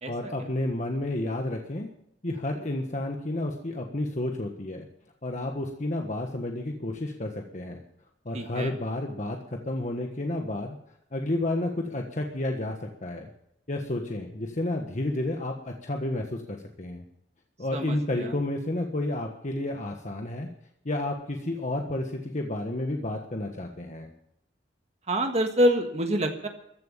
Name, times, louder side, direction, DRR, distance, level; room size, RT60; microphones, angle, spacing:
voice 1, 0.1-1.9 2.2-4.8 5.2-7.8 8.2-10.7 11.1-13.3 13.7-17.0 17.6-20.5 20.8-24.1, left 1 dB, 45° left, 2 dB, 1.5 m, -31 dB
voice 2, 8.3-8.7 17.7-18.3 25.1-26.5, equal, 40° right, 5 dB, 1.5 m, -26 dB
15.0 x 10.5 x 7.3 m, 0.75 s
head